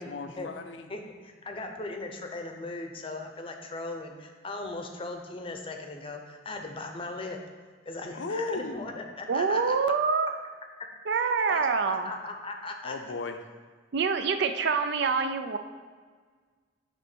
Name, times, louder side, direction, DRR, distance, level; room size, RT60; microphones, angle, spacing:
voice 1, 0.0-0.9 8.1-8.8 12.8-13.4, left 3 dB, 70° left, 7 dB, 0.5 m, -35 dB
voice 2, 0.9-7.4 7.8-9.8 11.1-13.0, left 2 dB, 30° left, 3 dB, 0.7 m, -38 dB
voice 3, 9.3-10.3 11.1-12.1 13.9-15.6, right 5 dB, 60° right, 8 dB, 0.4 m, -26 dB
8.2 x 3.1 x 6.0 m, 1.5 s
head